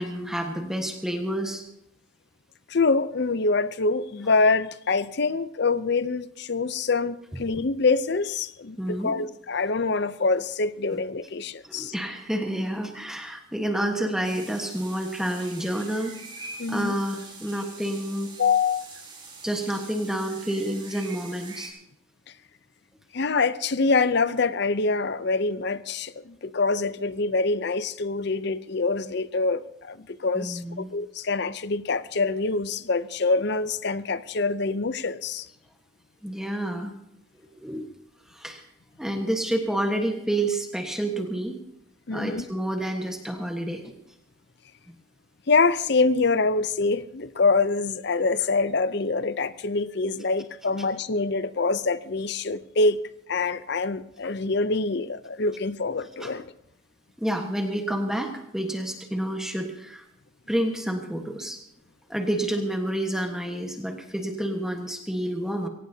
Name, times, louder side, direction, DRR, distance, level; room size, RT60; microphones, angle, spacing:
voice 1, 0.0-1.6 8.8-9.1 11.6-16.1 16.7-18.3 19.4-21.7 30.3-30.9 36.2-36.9 37.6-37.8 38.3-38.6 39.0-41.6 42.1-43.9 56.2-56.3 57.2-60.0 60.5-61.6 62.1-65.7, right 1 dB, 5° right, 3 dB, 1.3 m, -29 dB
voice 2, 2.7-11.9 16.6-16.9 18.4-18.9 23.1-35.5 42.1-42.4 45.5-53.0 53.3-56.5, left 3 dB, 55° left, 15 dB, 0.6 m, -25 dB
sound 1, 14.2-21.7, right 4 dB, 25° right, 5.3 m, -44 dB
23.0 x 18.0 x 2.8 m, 0.81 s
head